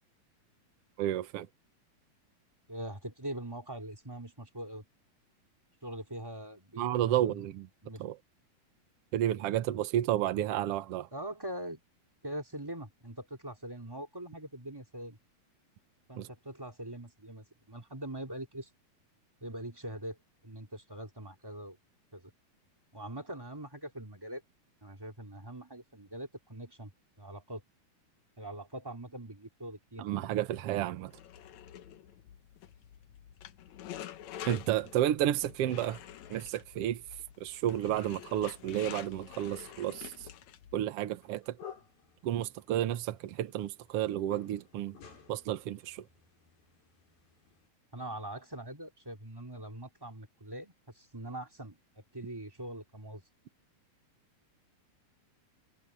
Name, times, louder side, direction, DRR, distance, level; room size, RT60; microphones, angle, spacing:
voice 1, 1.0-1.5 6.8-7.7 8.0-8.2 9.1-11.1 16.2-16.3 30.0-31.1 34.4-36.0 36.3-37.0 37.4-40.1 40.7-41.6 42.2-45.0 45.3-46.0, right 12 dB, 70° right, 1.4 m, -31 dB
voice 2, 2.7-4.8 5.8-7.5 7.8-8.0 11.1-11.8 12.2-15.2 16.1-18.7 19.4-20.2 20.4-21.8 22.1-22.3 22.9-24.4 24.8-26.9 27.2-27.6 28.4-30.0 47.9-51.8 52.1-53.2, right 1 dB, 5° right, 2.7 m, -42 dB
sound 1, 31.1-40.8, left 10 dB, 65° left, 2.0 m, -47 dB
sound 2, 41.1-47.7, left 8 dB, 85° left, 7.9 m, -54 dB
omnidirectional pair, 4.1 m